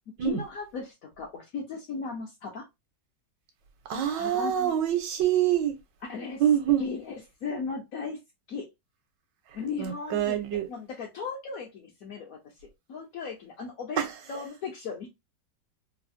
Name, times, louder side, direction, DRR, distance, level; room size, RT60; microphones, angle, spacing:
voice 1, 0.2-2.7 4.2-4.7 6.0-6.4 6.8-8.2 8.5-8.7 9.5-12.4 12.9-15.1, left 5 dB, 65° left, 0.9 m, -37 dB
voice 2, 3.9-5.7 6.4-6.9 9.8-10.7 14.0-14.1, right 10 dB, 75° right, 1.3 m, -25 dB
3.2 x 2.0 x 2.5 m
omnidirectional pair, 2.0 m